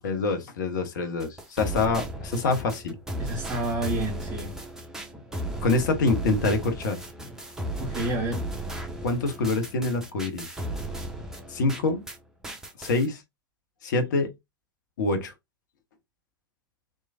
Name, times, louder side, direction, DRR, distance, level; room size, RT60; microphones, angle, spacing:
voice 1, 0.0-3.0 5.6-7.0 9.0-10.4 11.5-12.0 12.8-13.2 13.8-14.3 15.0-15.3, left 3 dB, 55° left, 0.9 m, -26 dB
sound 1, 1.2-12.2 12.4-13.1, right 1 dB, 5° right, 0.6 m, -35 dB
voice 2, 3.2-4.6 7.8-8.4, right 1 dB, 25° right, 1.4 m, -29 dB
3.1 x 2.3 x 2.4 m
figure-of-eight pair, 100°, 12 cm